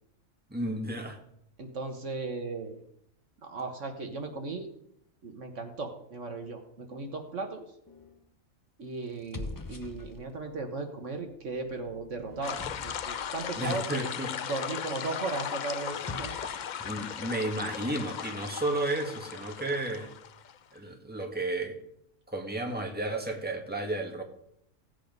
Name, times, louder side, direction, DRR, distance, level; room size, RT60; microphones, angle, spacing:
voice 1, 0.5-1.2 13.6-14.5 16.8-20.1 20.7-21.8 22.3-24.2, right 2 dB, 5° right, 2 dB, 1.9 m, -33 dB
voice 2, 1.6-2.8 3.4-4.7 5.2-7.7 8.8-14.1 14.4-16.5, right 3 dB, 65° right, 5 dB, 1.7 m, -36 dB
sound 1, 7.9-8.3 9.1-10.5 11.2-13.5 15.9-16.8, left 2 dB, 20° left, 0.7 m, -44 dB
sound 2, 12.4-20.8, left 8 dB, 65° left, 0.4 m, -37 dB
16.5 x 8.4 x 5.3 m, 0.75 s
omnidirectional pair, 1.4 m